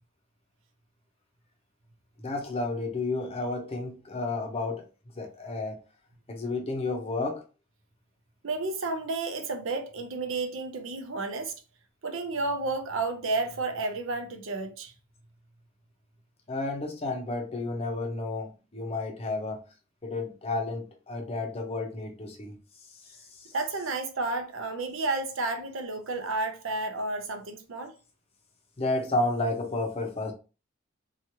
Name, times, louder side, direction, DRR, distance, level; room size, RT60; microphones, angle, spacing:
voice 1, 2.2-4.9 5.2-5.8 6.3-7.4 16.5-19.6 20.0-22.6 22.9-23.5 28.8-30.3, left 2 dB, 30° left, 0.7 m, -31 dB
voice 2, 8.4-11.6 12.0-14.9 23.5-27.9, right 3 dB, 70° right, 0.6 m, -31 dB
2.9 x 2.4 x 2.8 m
head